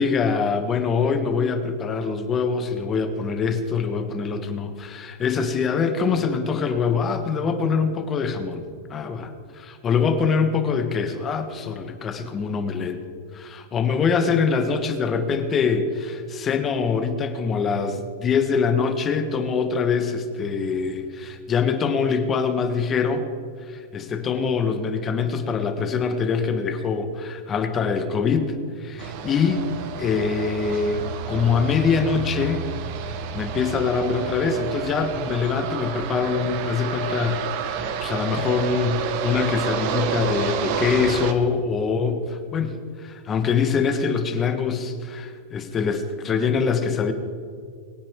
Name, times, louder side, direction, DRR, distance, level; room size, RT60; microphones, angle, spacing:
voice 1, 0.0-13.0 13.3-23.3 23.7-29.7 30.0-32.7 33.3-47.1, left 5 dB, 20° left, 7 dB, 1.3 m, -24 dB
sound 1, 29.0-41.3, right 6 dB, 50° right, 1.2 m, -29 dB
22.5 x 9.4 x 3.7 m, 2.2 s
supercardioid pair, 145°, 0 cm